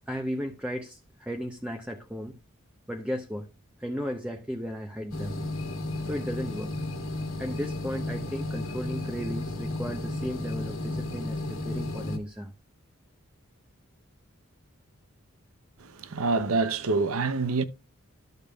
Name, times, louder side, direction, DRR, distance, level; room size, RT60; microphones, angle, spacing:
voice 1, 0.1-2.3 2.9-3.5 3.8-5.4 6.0-6.7 7.4-12.5, equal, 5° right, 0.6 m, -35 dB
sound 1, 5.1-12.2, left 2 dB, 75° left, 1.6 m, -33 dB
voice 2, 15.8-17.6, right 3 dB, 80° right, 0.7 m, -26 dB
12.5 x 6.6 x 2.3 m
head